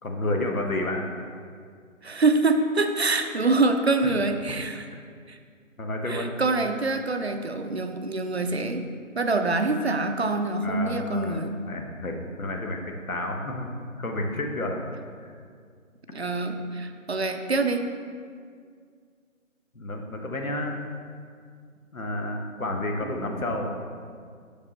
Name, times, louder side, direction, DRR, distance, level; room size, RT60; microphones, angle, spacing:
voice 1, 0.0-1.1 4.0-4.2 5.8-6.6 10.6-11.4 11.7-13.7 14.0-14.8 15.2-15.3 19.7-20.8 21.9-23.7, left 1 dB, 90° left, 3 dB, 1.2 m, -30 dB
voice 2, 2.0-4.9 5.3-5.4 6.1-8.9 9.2-11.6 16.1-17.9, right 3 dB, 50° right, 7 dB, 0.5 m, -25 dB
6.8 x 5.2 x 4.3 m, 2.1 s
figure-of-eight pair, 170°, 41 cm